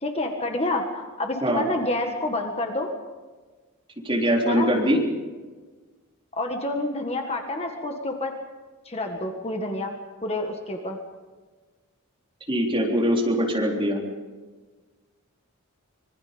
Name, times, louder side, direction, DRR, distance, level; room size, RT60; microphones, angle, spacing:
voice 1, 0.0-2.9 4.5-4.7 6.3-8.3 8.9-10.0 10.2-11.0, left 2 dB, 30° left, 3 dB, 1.8 m, -28 dB
voice 2, 4.0-5.0 12.5-14.0, equal, 25° right, -1 dB, 3.8 m, -22 dB
25.5 x 22.5 x 5.3 m, 1.4 s
head